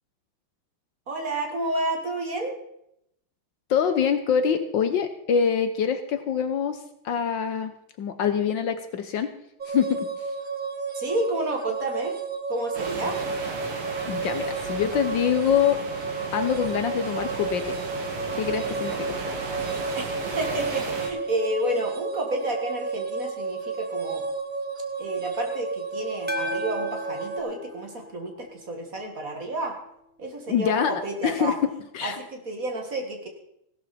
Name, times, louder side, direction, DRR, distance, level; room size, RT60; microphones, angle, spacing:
voice 1, 1.1-2.6 10.9-12.1 12.5-13.2 20.0-24.2 25.0-29.8 30.2-31.6 32.0-33.3, right 1 dB, 40° right, 3 dB, 2.2 m, -30 dB
voice 2, 3.7-7.7 8.0-9.3 9.7-10.3 14.1-17.8 18.4-19.2 30.5-31.5 31.9-32.2, left 8 dB, 65° left, 9 dB, 1.4 m, -25 dB
sound 1, 9.6-27.4, right 4 dB, 70° right, 0.4 m, -32 dB
sound 2, 12.7-21.1, right 3 dB, 90° right, 3.1 m, -35 dB
sound 3, 26.3-28.7, left 2 dB, 10° right, 0.6 m, -36 dB
16.5 x 12.0 x 4.2 m, 0.77 s
omnidirectional pair, 2.4 m